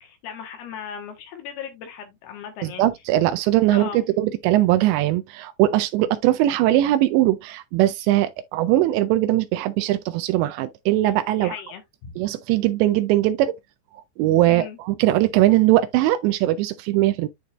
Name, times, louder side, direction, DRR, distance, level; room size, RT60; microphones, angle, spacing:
voice 1, 0.0-2.9 3.7-4.0 11.3-12.2 14.5-14.8, left 8 dB, 70° left, 3.0 m, -37 dB
voice 2, 2.8-11.5 12.2-13.5 14.2-17.3, right 14 dB, 85° right, 2.8 m, -20 dB
11.0 x 3.9 x 2.4 m
omnidirectional pair, 5.1 m